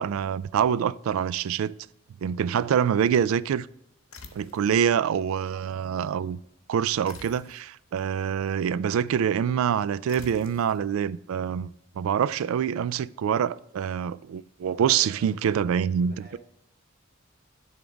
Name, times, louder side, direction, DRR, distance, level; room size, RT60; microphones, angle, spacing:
voice 1, 0.0-1.7 2.2-3.7 4.3-6.4 6.7-16.4, right 8 dB, 75° right, 0.3 m, -25 dB
sound 1, 4.1-4.8 7.0-7.7 10.1-10.8, left 4 dB, 80° left, 1.1 m, -47 dB
voice 2, 14.7-16.4, left 1 dB, 45° right, 1.4 m, -49 dB
10.5 x 3.6 x 5.0 m
head